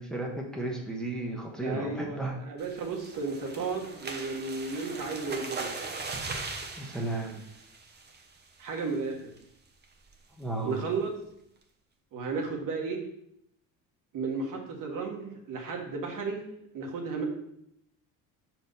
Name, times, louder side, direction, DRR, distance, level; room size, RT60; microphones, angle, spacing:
voice 1, 0.0-2.3 6.8-7.4 10.4-10.8, right 2 dB, ahead, -1 dB, 1.2 m, -34 dB
voice 2, 1.6-5.7 8.6-9.2 10.6-11.1 12.1-13.0 14.1-17.2, right 4 dB, 55° right, 1 dB, 1.6 m, -33 dB
sound 1, 2.6-8.4 8.8-9.0 9.4-9.5 9.8-10.1, right 3 dB, 25° right, 1.0 m, -39 dB
4.9 x 4.7 x 5.4 m, 0.74 s
cardioid pair, 105°, 38 cm